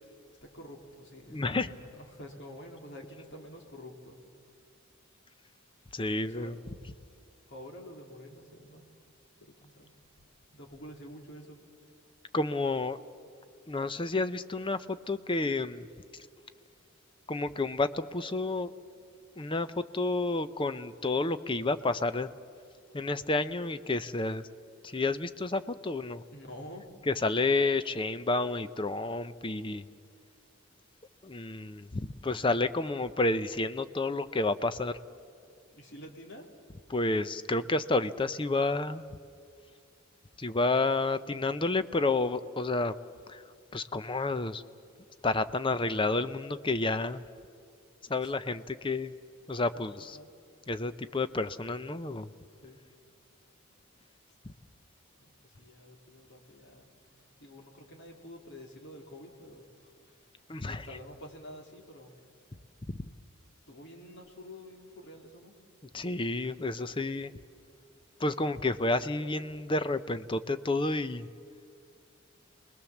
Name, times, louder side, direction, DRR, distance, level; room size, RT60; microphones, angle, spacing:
voice 1, 0.4-4.2 6.2-6.6 7.5-8.8 9.5-9.9 10.5-11.6 26.3-26.8 35.7-36.5 48.2-48.3 49.7-49.9 50.1-50.3 52.6-52.8 55.2-56.9 57.4-60.2 60.6-62.1 63.7-65.5, equal, 55° left, 1 dB, 3.3 m, -48 dB
voice 2, 1.3-1.7 5.9-6.6 12.3-13.0 13.7-15.9 17.3-18.7 19.4-22.3 22.9-24.5 24.8-26.2 27.1-29.9 31.2-35.0 36.9-39.1 40.4-42.9 43.3-43.4 43.7-44.6 45.2-47.2 48.1-49.2 49.5-50.2 50.7-52.3 60.5-60.9 62.9-63.0 65.9-67.3 68.2-71.3, left 2 dB, 25° left, 12 dB, 0.7 m, -30 dB
28.0 x 20.5 x 7.2 m, 2.4 s
head